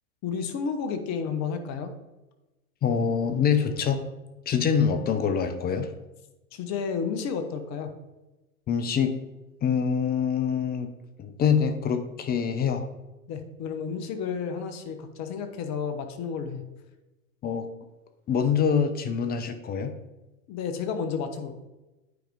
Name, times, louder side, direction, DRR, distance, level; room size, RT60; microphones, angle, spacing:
voice 1, 0.2-1.9 6.5-7.9 13.3-16.6 20.5-21.6, left 6 dB, 35° left, 8 dB, 1.0 m, -31 dB
voice 2, 2.8-4.0 4.5-5.9 8.7-9.1 9.6-10.9 11.2-12.9 17.4-17.7 18.3-19.9, left 7 dB, 20° left, 8 dB, 0.5 m, -25 dB
9.3 x 5.0 x 3.5 m, 1.1 s
hypercardioid pair, 100°, 45 cm